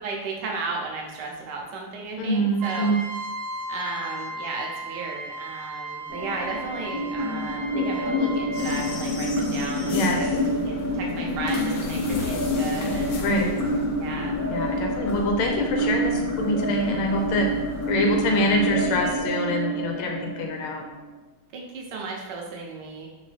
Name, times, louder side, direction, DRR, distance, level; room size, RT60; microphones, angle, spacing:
voice 1, 0.0-2.9 3.7-13.2 14.0-14.4 21.5-23.1, right 3 dB, 65° right, -1 dB, 1.3 m, -35 dB
voice 2, 2.2-3.0 9.9-10.3 13.2-13.5 14.5-17.5 17.9-20.8, left 1 dB, 85° left, 2 dB, 1.6 m, -25 dB
Trumpet, 2.6-9.0, right 2 dB, 85° right, 1.5 m, -36 dB
sound 1, 6.1-21.1, equal, 30° left, 1.1 m, -28 dB
sound 2, 8.5-19.2, left 4 dB, 70° left, 1.1 m, -34 dB
3.9 x 3.2 x 4.1 m, 1.1 s
omnidirectional pair, 2.3 m